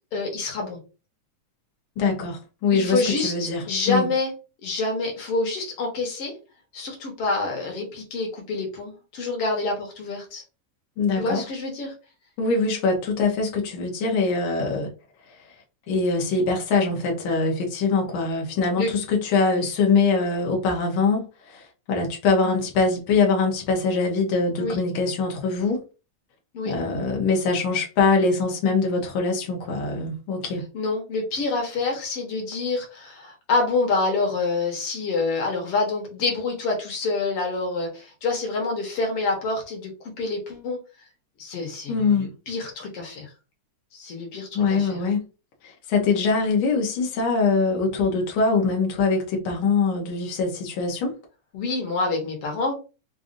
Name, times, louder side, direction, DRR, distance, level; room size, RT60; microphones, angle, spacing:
voice 1, 0.1-0.8 2.7-4.3 4.6-6.3 6.7-10.4 11.2-11.9 18.8-18.9 24.6-24.8 26.5-26.7 30.7-40.8 41.4-43.3 43.9-45.0 51.5-52.7, left 3 dB, 60° left, 1 dB, 1.8 m, -27 dB
voice 2, 2.0-4.1 11.0-11.4 12.4-14.9 15.9-25.8 26.6-30.6 41.9-42.3 44.5-45.2 45.6-51.1, left 4 dB, 80° left, 0 dB, 1.1 m, -23 dB
5.1 x 2.4 x 2.6 m, 0.32 s
omnidirectional pair, 3.5 m